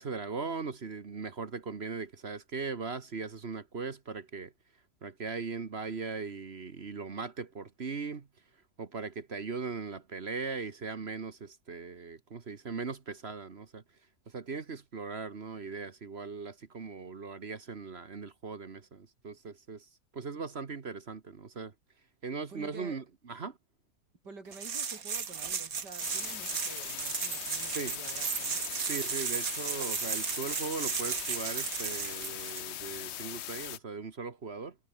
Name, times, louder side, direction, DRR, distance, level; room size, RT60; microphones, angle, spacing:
voice 1, 0.0-4.5 5.0-8.3 8.8-13.8 14.3-21.7 22.2-23.6 27.7-27.9 28.9-34.8, right 4 dB, 40° right, 1.4 m, -39 dB
voice 2, 22.5-23.0 24.2-28.6, right 3 dB, 75° right, 4.8 m, -49 dB
sound 1, 24.5-32.6, right 6 dB, 55° right, 2.1 m, -35 dB
sound 2, 26.0-33.8, left 12 dB, 70° left, 0.6 m, -40 dB
omnidirectional pair, 1.8 m